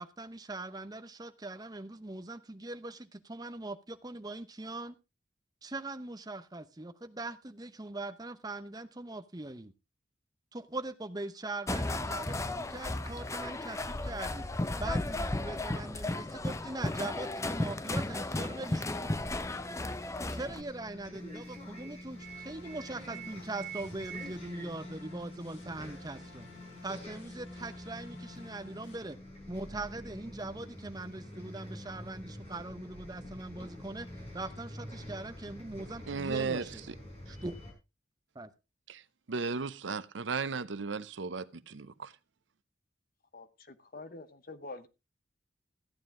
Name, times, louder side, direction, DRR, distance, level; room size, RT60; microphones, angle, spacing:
voice 1, 0.0-4.9 5.6-9.7 10.5-14.4 14.8-19.2 20.3-26.5 26.8-29.2 29.5-34.1 34.3-36.8 37.3-37.6 38.3-38.5, right 2 dB, 20° right, 0.8 m, -41 dB
sound 1, 11.7-20.6, left 2 dB, 15° left, 0.5 m, -34 dB
Bus, 18.0-37.7, equal, 35° left, 5.3 m, -46 dB
sound 2, 22.1-29.0, left 2 dB, 80° left, 5.3 m, -54 dB
voice 2, 36.1-37.0 38.9-39.0 39.3-42.1, right 5 dB, 80° right, 0.7 m, -35 dB
voice 3, 43.3-44.9, left 3 dB, 50° left, 1.0 m, -46 dB
14.5 x 9.5 x 3.7 m
head